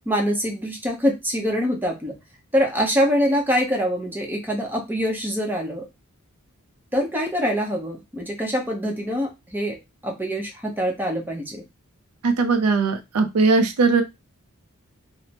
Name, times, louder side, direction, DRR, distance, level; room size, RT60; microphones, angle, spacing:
voice 1, 0.1-2.1 2.5-5.9 6.9-9.8 10.0-11.6, equal, 10° right, 1 dB, 0.7 m, -24 dB
voice 2, 12.2-14.0, right 4 dB, 85° right, 6 dB, 0.4 m, -19 dB
3.2 x 2.0 x 2.8 m, 0.23 s
head